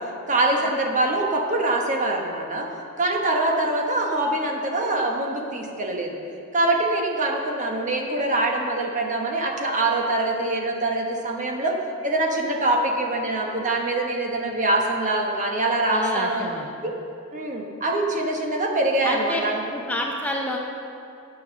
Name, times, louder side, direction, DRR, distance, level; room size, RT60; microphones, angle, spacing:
voice 1, 0.3-2.7 3.0-6.2 6.5-11.8 12.0-16.5 16.8-16.9 17.3-19.6, right 2 dB, 35° right, 1 dB, 1.1 m, -24 dB
voice 2, 15.9-16.7 19.0-19.4 19.7-20.6, left 1 dB, 5° left, 0 dB, 0.6 m, -29 dB
9.6 x 6.4 x 7.0 m, 2.7 s
head